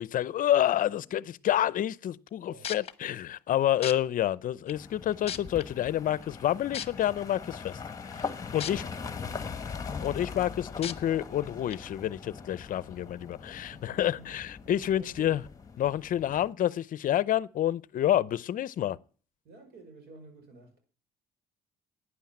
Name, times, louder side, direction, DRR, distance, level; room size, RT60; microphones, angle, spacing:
voice 1, 0.0-7.8 8.1-8.8 10.0-15.4 15.8-19.0, left 12 dB, 55° left, 0.6 m, -28 dB
sound 1, 2.6-2.9 3.8-3.9 4.7-4.8 5.3-5.6 6.7-6.9 8.6-8.7 9.2-9.3 10.8-10.9 11.7-11.8, left 8 dB, 35° left, 1.0 m, -34 dB
sound 2, 4.7-16.5, left 5 dB, 20° left, 1.4 m, -41 dB
voice 2, 8.5-9.6 13.6-14.3 14.6-15.4 19.4-20.8, right 3 dB, 70° right, 5.5 m, -52 dB
11.5 x 9.8 x 8.7 m
cardioid pair, 110°, 17 cm